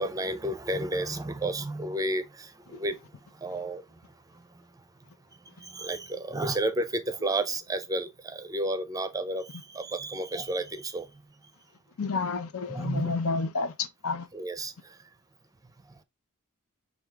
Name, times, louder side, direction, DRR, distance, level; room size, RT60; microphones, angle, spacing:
voice 1, 0.0-2.5 2.8-2.9 3.4-3.8 5.7-11.1 12.7-13.1 14.3-14.7, right 1 dB, 15° right, 0.5 m, -31 dB
voice 2, 12.0-14.3, left 4 dB, 70° left, 0.7 m, -30 dB
6.1 x 2.4 x 3.4 m
head